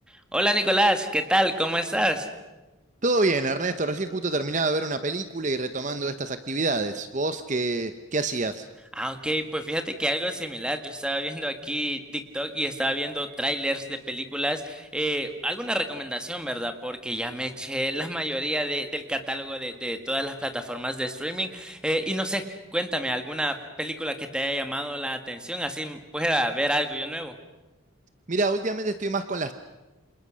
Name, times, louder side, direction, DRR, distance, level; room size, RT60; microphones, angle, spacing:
voice 1, 0.3-2.3 9.0-27.3, equal, 5° right, 7 dB, 1.7 m, -28 dB
voice 2, 3.0-8.7 28.3-29.5, right 3 dB, 35° right, 10 dB, 0.8 m, -27 dB
29.0 x 27.0 x 6.4 m, 1.1 s
head